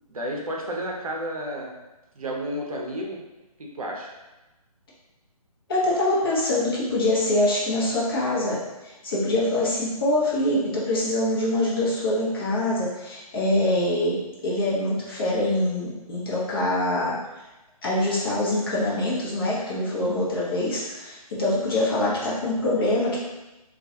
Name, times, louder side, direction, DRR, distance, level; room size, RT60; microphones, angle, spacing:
voice 1, 0.1-1.7 2.2-3.2 3.6-4.1, equal, 65° right, -1 dB, 0.6 m, -31 dB
voice 2, 5.7-14.2 14.4-17.2 17.8-23.2, left 1 dB, 35° left, -7 dB, 0.7 m, -24 dB
2.3 x 2.2 x 2.7 m, 1.0 s
figure-of-eight pair, 145°, 20 cm